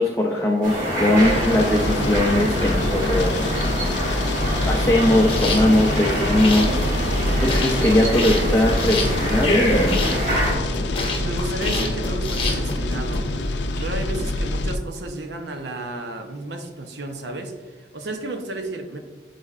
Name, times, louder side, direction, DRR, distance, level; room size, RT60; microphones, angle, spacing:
voice 1, 0.0-3.5 4.6-7.0 7.4-10.0, left 1 dB, 15° left, -1 dB, 0.4 m, -20 dB
sound 1, 0.6-10.5, equal, 45° right, 1.8 m, -26 dB
sound 2, 1.2-14.8, left 2 dB, 90° left, 0.5 m, -25 dB
sound 3, 5.3-13.2, left 2 dB, 30° left, 0.8 m, -27 dB
voice 2, 11.2-13.3 13.8-19.0, right 2 dB, 85° right, 6 dB, 0.7 m, -32 dB
9.6 x 4.1 x 2.5 m, 1.3 s
head